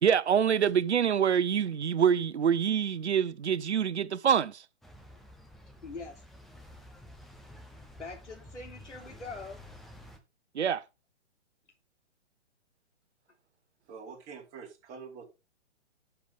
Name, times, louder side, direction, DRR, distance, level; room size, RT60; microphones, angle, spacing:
voice 1, 0.0-4.6 10.5-10.8, right 8 dB, 70° right, 0.9 m, -26 dB
sound 1, 4.8-10.2, left 1 dB, ahead, 0.5 m, -51 dB
voice 2, 5.8-6.2 8.0-9.6, left 3 dB, 85° left, 3.7 m, -43 dB
voice 3, 13.9-15.3, right 5 dB, 25° right, 4.0 m, -45 dB
11.5 x 7.1 x 3.7 m
hypercardioid pair, 135°, 35 cm